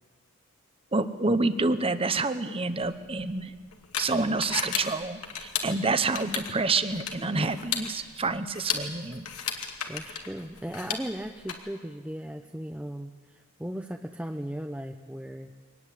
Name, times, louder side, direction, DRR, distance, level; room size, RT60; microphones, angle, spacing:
voice 1, 0.9-3.5 4.0-9.3, right 3 dB, 25° right, 11 dB, 1.0 m, -28 dB
sound 1, 2.8-11.5, left 7 dB, 85° left, 2.4 m, -35 dB
voice 2, 9.9-15.5, equal, 5° right, 4 dB, 0.7 m, -37 dB
23.5 x 19.5 x 8.5 m, 1.5 s
head